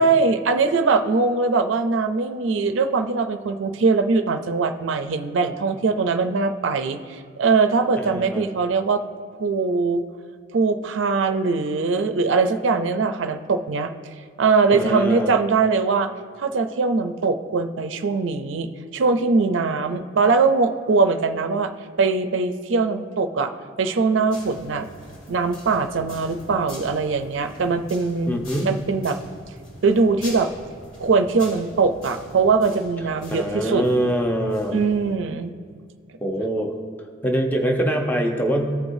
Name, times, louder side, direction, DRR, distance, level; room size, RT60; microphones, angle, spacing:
voice 1, 0.0-9.0 9.4-10.0 10.5-13.9 14.4-16.1 16.4-21.7 22.0-23.5 23.8-24.9 25.3-28.4 28.6-29.2 29.8-30.5 31.0-33.8 34.7-35.5, right 4 dB, 65° right, 8 dB, 0.4 m, -21 dB
voice 2, 8.0-8.5 14.7-15.4 28.3-28.7 33.3-34.8 36.2-36.7 37.2-38.8, equal, 10° left, 2 dB, 0.7 m, -23 dB
sound 1, 24.3-35.2, left 1 dB, 80° left, 1.8 m, -43 dB
14.5 x 4.8 x 2.6 m, 2.2 s
head